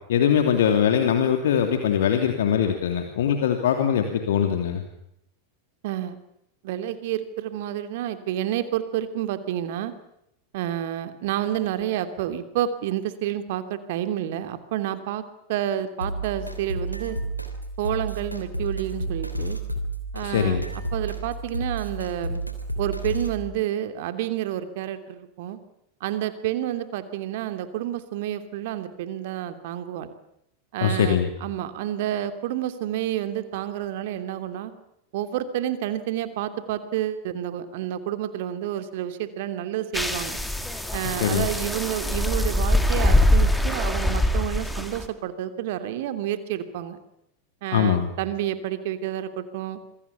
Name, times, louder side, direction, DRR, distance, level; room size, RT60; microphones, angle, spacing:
voice 1, 0.1-4.8 20.2-20.6 30.8-31.3 41.0-41.5 47.7-48.1, left 8 dB, 60° left, 6 dB, 2.9 m, -22 dB
voice 2, 5.8-6.2 6.6-9.9 10.5-15.2 15.5-17.2 17.8-19.6 20.1-20.6 20.9-22.4 22.8-25.6 26.0-30.1 30.7-34.7 35.1-40.4 40.9-47.0 47.6-49.8, right 12 dB, 50° right, 10 dB, 2.9 m, -29 dB
sound 1, 16.0-23.4, right 2 dB, 90° right, 3.3 m, -31 dB
sound 2, 39.9-45.0, left 1 dB, 5° left, 3.0 m, -23 dB
27.0 x 24.0 x 7.1 m, 0.78 s
figure-of-eight pair, 90°, 0 cm